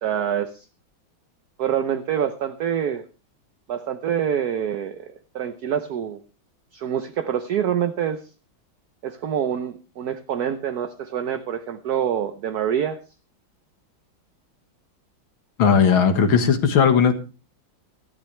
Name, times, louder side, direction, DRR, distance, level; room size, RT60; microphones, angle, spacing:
voice 1, 0.0-0.7 1.6-3.1 3.7-6.2 6.7-8.2 9.0-13.0, right 9 dB, 60° right, 9 dB, 1.2 m, -26 dB
voice 2, 15.6-17.1, left 6 dB, 85° left, 7 dB, 2.4 m, -17 dB
18.5 x 13.5 x 3.3 m, 0.33 s
omnidirectional pair, 2.2 m